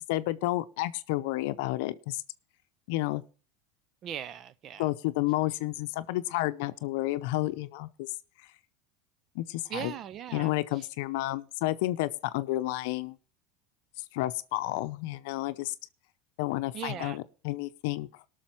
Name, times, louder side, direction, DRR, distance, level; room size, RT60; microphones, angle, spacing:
voice 1, 0.1-2.2 2.9-3.2 4.8-8.1 9.4-9.9 10.3-13.2 14.1-15.7 16.4-18.3, left 17 dB, 75° left, 0.6 m, -31 dB
voice 2, 4.0-4.9 9.7-10.9 16.7-17.3, right 9 dB, 45° right, 0.5 m, -39 dB
18.0 x 6.4 x 4.4 m
supercardioid pair, 110°, 0 cm